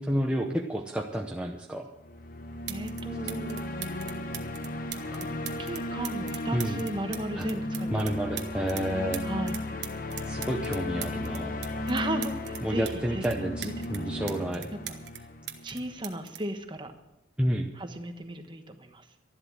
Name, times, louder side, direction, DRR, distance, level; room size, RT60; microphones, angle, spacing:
voice 1, 0.0-1.9 5.1-5.2 6.5-6.8 7.4-7.5 7.9-9.2 10.3-11.6 12.6-14.7 17.4-17.7, equal, 5° right, 0 dB, 0.8 m, -30 dB
sound 1, 2.0-16.2, left 1 dB, 45° left, 0.9 m, -35 dB
sound 2, 2.2-2.3 2.7-3.0 3.3-8.8 9.1-12.9 13.2-15.2 15.5-17.3 18.2-18.5, right 12 dB, 60° right, 1.2 m, -41 dB
voice 2, 2.7-3.6 5.2-5.3 5.6-7.9 9.2-9.6 11.9-14.3 15.6-16.9 17.8-19.1, right 1 dB, 25° right, 6 dB, 1.2 m, -36 dB
12.5 x 11.5 x 6.1 m, 0.93 s
head